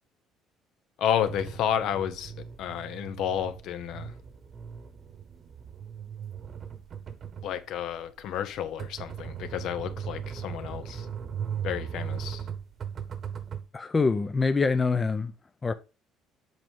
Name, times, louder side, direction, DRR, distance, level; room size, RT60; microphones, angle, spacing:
voice 1, 1.0-2.3 2.6-4.1 7.4-11.1 11.6-12.4, left 9 dB, 65° left, 0.8 m, -31 dB
sound 1, 1.3-13.7, right 8 dB, 40° right, 1.0 m, -38 dB
voice 2, 13.7-15.3 15.6-15.7, left 4 dB, 20° left, 0.5 m, -25 dB
7.8 x 4.7 x 3.6 m
cardioid pair, 135°, 0 cm